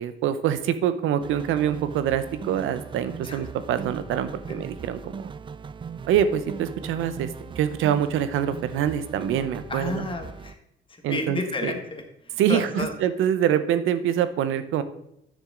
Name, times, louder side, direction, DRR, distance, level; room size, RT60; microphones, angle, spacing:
voice 1, 0.0-5.1 6.1-7.3 7.6-10.0 11.0-11.7 12.4-14.8, right 9 dB, 85° right, 12 dB, 0.7 m, -25 dB
sound 1, 1.2-10.5, right 5 dB, 25° right, 0.3 m, -39 dB
voice 2, 9.7-10.5 10.9-12.9, left 3 dB, 25° left, 4 dB, 1.6 m, -32 dB
9.7 x 6.5 x 3.8 m, 0.80 s
cardioid pair, 90°, 20 cm